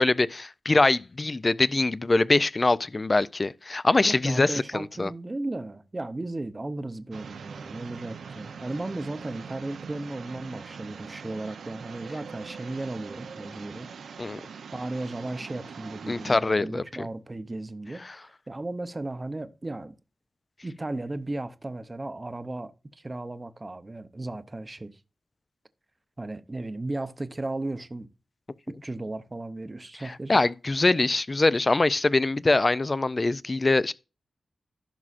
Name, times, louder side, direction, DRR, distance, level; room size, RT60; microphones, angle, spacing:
voice 1, 0.0-5.1 14.2-14.4 16.1-17.1 18.0-18.1 30.3-33.9, left 2 dB, 25° left, 0.3 m, -23 dB
voice 2, 4.0-13.9 14.7-19.9 20.6-25.0 26.2-28.1 28.7-30.4, right 2 dB, 20° right, 0.6 m, -35 dB
sound 1, 7.1-16.4, right 6 dB, 90° right, 0.6 m, -42 dB
15.0 x 6.1 x 2.5 m
wide cardioid pair, 155°, 0 cm